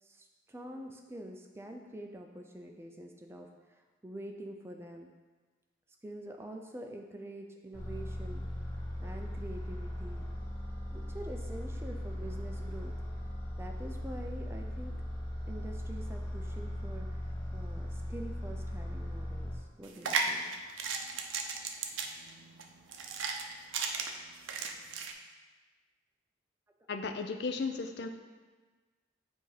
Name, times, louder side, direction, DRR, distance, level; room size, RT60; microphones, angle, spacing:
voice 1, 0.0-5.1 6.0-8.4 9.0-10.2 10.9-12.9 13.6-14.9 15.5-20.5, right 1 dB, 15° right, 3 dB, 0.4 m, -46 dB
sound 1, 7.7-19.6, equal, 15° left, 1.0 m, -38 dB
sound 2, 19.8-25.1, right 5 dB, 85° right, 0.5 m, -35 dB
voice 2, 26.9-28.1, left 4 dB, 60° left, 6 dB, 0.4 m, -35 dB
7.9 x 2.8 x 4.8 m, 1.3 s
head